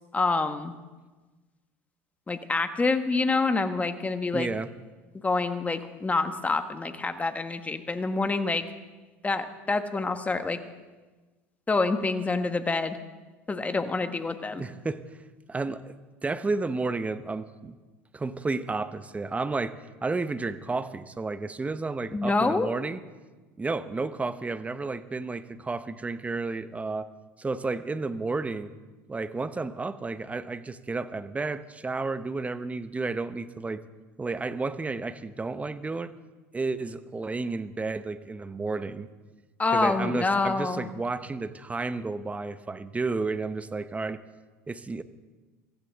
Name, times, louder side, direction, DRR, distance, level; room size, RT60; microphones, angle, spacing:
voice 1, 0.1-0.7 2.3-4.5 5.2-8.6 9.2-10.6 11.7-13.0 13.5-14.6 22.1-22.7 39.6-40.9, left 3 dB, 20° left, 9 dB, 1.5 m, -27 dB
voice 2, 4.3-4.7 14.6-15.0 15.5-15.9 16.2-17.8 18.1-19.8 20.0-23.0 23.6-27.1 27.4-28.7 29.1-33.8 34.2-36.1 36.5-39.1 39.7-44.2 44.7-45.0, right 3 dB, 15° right, 12 dB, 1.0 m, -31 dB
23.5 x 15.5 x 3.7 m, 1.2 s
hypercardioid pair, 80°, 8 cm